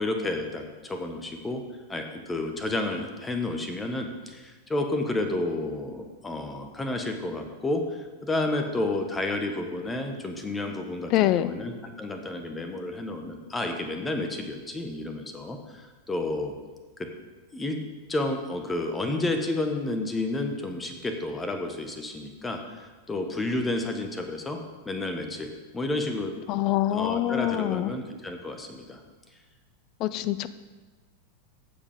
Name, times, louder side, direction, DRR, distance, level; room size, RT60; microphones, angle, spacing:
voice 1, 0.0-1.6 1.9-16.5 17.0-17.1 17.5-17.8 18.1-24.6 24.8-26.3 26.9-29.0 30.1-30.3, left 2 dB, 10° left, 5 dB, 1.3 m, -31 dB
voice 2, 11.1-11.5 26.5-27.9 30.0-30.5, left 14 dB, 40° left, 15 dB, 0.4 m, -25 dB
15.5 x 5.1 x 5.1 m, 1.3 s
figure-of-eight pair, 90°, 0 cm